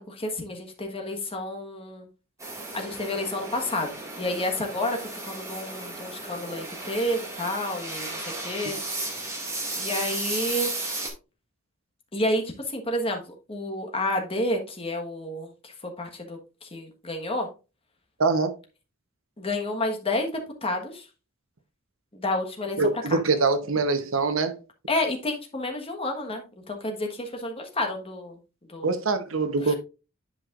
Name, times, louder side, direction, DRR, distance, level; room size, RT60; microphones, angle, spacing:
voice 1, 0.0-2.1 2.7-8.8 9.7-10.8 12.1-17.5 19.4-21.1 22.1-22.8 23.1-23.2 24.9-28.4 28.7-28.9 29.6-29.7, left 1 dB, 25° left, 1.3 m, -30 dB
sound 1, 2.4-11.1, right 2 dB, 15° right, 1.9 m, -34 dB
voice 2, 18.2-18.6 22.8-24.6 28.8-29.7, right 3 dB, 65° right, 0.9 m, -24 dB
10.5 x 5.2 x 2.4 m
head